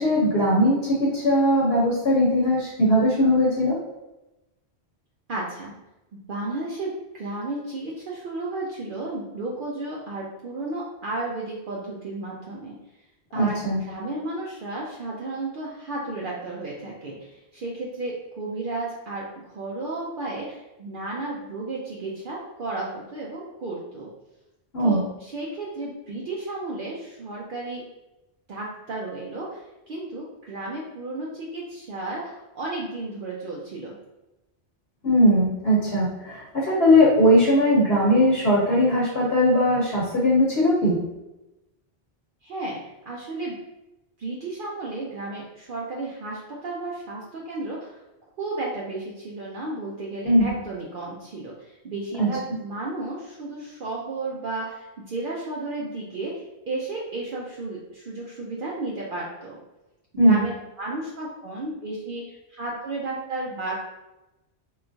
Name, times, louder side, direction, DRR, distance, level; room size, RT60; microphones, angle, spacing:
voice 1, 0.0-3.8 13.3-13.8 24.7-25.0 35.0-41.0 50.2-50.5 52.2-52.3 60.2-60.4, equal, 70° left, -4 dB, 1.1 m, -19 dB
voice 2, 5.3-5.7 6.1-12.8 13.3-24.1 24.8-27.8 28.5-34.0 42.4-42.8 43.1-43.5 44.2-48.0 48.4-59.6 60.1-63.8, right 2 dB, 60° right, -4 dB, 0.6 m, -33 dB
3.6 x 2.4 x 2.6 m, 0.98 s
omnidirectional pair, 1.1 m